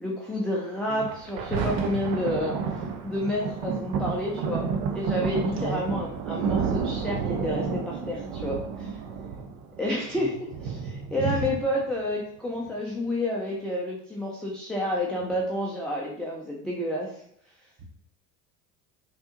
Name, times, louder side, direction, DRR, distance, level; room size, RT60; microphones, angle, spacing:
voice 1, 0.0-2.6 3.0-4.7 4.9-9.0 9.8-10.3 10.6-17.2, left 1 dB, ahead, -4 dB, 0.3 m, -30 dB
Thunder, 1.0-12.0 12.7-12.8, right 6 dB, 55° right, 0.6 m, -31 dB
voice 2, 5.5-5.9 10.2-10.4 11.2-11.5, right 3 dB, 30° right, 1 dB, 0.9 m, -31 dB
3.3 x 2.6 x 2.8 m, 0.69 s
hypercardioid pair, 75°, 44 cm